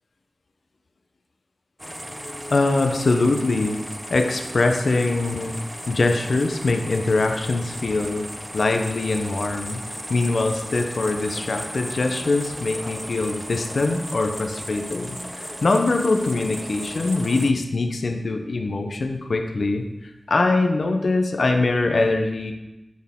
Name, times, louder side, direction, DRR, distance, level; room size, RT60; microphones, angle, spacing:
sound 1, 1.8-17.5, equal, 5° right, 0.6 m, -35 dB
voice 1, 2.5-3.8 4.1-5.6 5.9-8.3 8.5-9.8 10.1-22.5, left 3 dB, 70° left, 5 dB, 0.7 m, -23 dB
9.3 x 4.4 x 3.6 m, 0.97 s
cardioid pair, 45°, 0 cm